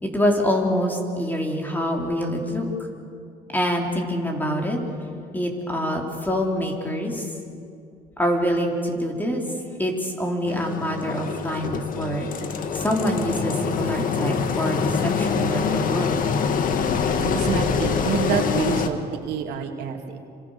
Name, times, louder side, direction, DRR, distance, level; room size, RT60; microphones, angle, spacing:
voice 1, 0.0-2.7 3.5-4.8 5.3-7.2 8.2-9.4 9.8-12.3 12.7-16.1, equal, 10° left, 1 dB, 4.3 m, -25 dB
Engine, 10.5-18.9, left 6 dB, 55° left, 1.8 m, -25 dB
voice 2, 17.2-20.2, right 8 dB, 85° right, 4 dB, 2.5 m, -27 dB
28.5 x 26.0 x 6.9 m, 2.4 s
cardioid pair, 110°, 17 cm